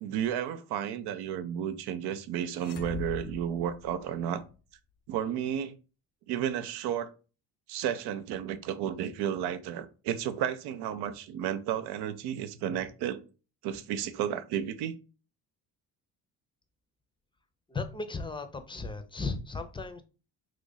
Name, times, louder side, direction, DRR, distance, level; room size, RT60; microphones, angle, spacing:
voice 1, 0.0-4.4 5.1-5.8 6.3-7.1 7.7-13.2 13.6-14.9, right 9 dB, 75° right, 0.6 m, -32 dB
sound 1, 2.5-4.5, left 6 dB, 90° left, 0.7 m, -42 dB
voice 2, 17.7-20.0, left 3 dB, 15° left, 0.5 m, -36 dB
3.1 x 2.5 x 3.9 m
supercardioid pair, 75°, 39 cm